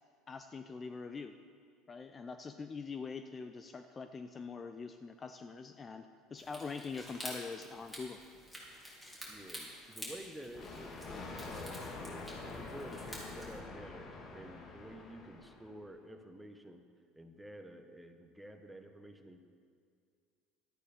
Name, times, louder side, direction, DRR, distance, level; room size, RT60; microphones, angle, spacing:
voice 1, 0.3-1.4 1.9-8.2, left 4 dB, 30° left, 8 dB, 0.5 m, -44 dB
sound 1, 6.4-13.6, equal, 10° left, 3.5 m, -49 dB
voice 2, 9.3-11.8 12.5-16.8 17.2-19.4, right 1 dB, 5° right, 6 dB, 1.1 m, -51 dB
Thunder, 10.5-15.9, left 3 dB, 45° left, 1.7 m, -46 dB
12.0 x 9.1 x 5.1 m, 2.2 s
supercardioid pair, 90°, 0 cm